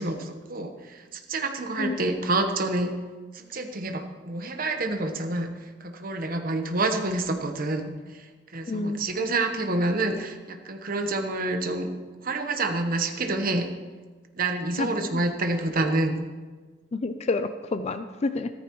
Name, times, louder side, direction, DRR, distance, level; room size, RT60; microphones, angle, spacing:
voice 1, 0.0-2.9 3.3-11.9 12.2-13.7 14.3-16.2, right 2 dB, 50° right, 6 dB, 1.1 m, -28 dB
voice 2, 8.7-9.1 14.8-15.2 16.9-18.5, left 3 dB, 35° left, 10 dB, 0.4 m, -29 dB
14.0 x 14.0 x 3.1 m, 1.4 s
head